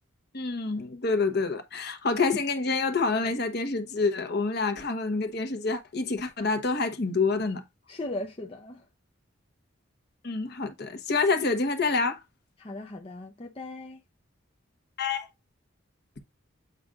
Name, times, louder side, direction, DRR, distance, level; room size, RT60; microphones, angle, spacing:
voice 1, 0.3-7.6 10.2-12.2 15.0-15.3, left 4 dB, 55° left, 1.1 m, -27 dB
voice 2, 7.9-8.8 12.6-14.0, left 2 dB, 30° left, 0.6 m, -38 dB
8.0 x 5.0 x 2.4 m
head